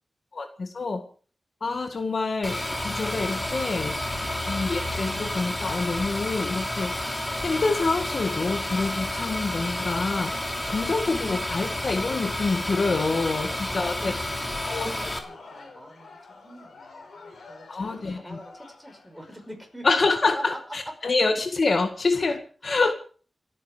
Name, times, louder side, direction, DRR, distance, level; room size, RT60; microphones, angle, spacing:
voice 1, 0.3-1.0 1.6-4.0 4.5-6.9 7.4-10.3 10.7-14.2 14.7-14.9 17.7-18.4 19.8-22.9, left 3 dB, 55° left, 7 dB, 1.8 m, -26 dB
sound 1, 2.4-15.2, left 1 dB, 15° left, 3.1 m, -30 dB
voice 2, 13.7-19.9 20.3-20.6 22.8-22.9, equal, ahead, 3 dB, 5.5 m, -44 dB
Crowd, 14.4-20.2, left 3 dB, 80° left, 4.8 m, -47 dB
28.0 x 9.8 x 5.1 m, 0.41 s
wide cardioid pair, 120°, 0 cm